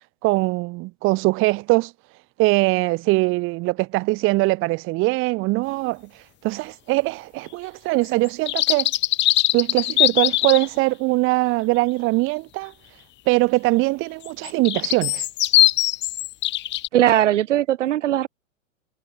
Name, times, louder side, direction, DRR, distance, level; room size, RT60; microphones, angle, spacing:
voice 1, 0.2-1.9 2.4-6.0 6.4-8.9 9.5-12.7 13.3-15.3, right 23 dB, 30° right, 1.7 m, -21 dB
sound 1, 8.3-10.7 14.2-16.9, left 15 dB, 25° left, 2.4 m, -21 dB
voice 2, 16.9-18.3, right 12 dB, 60° right, 1.6 m, -19 dB
hypercardioid pair, 130°, 40 cm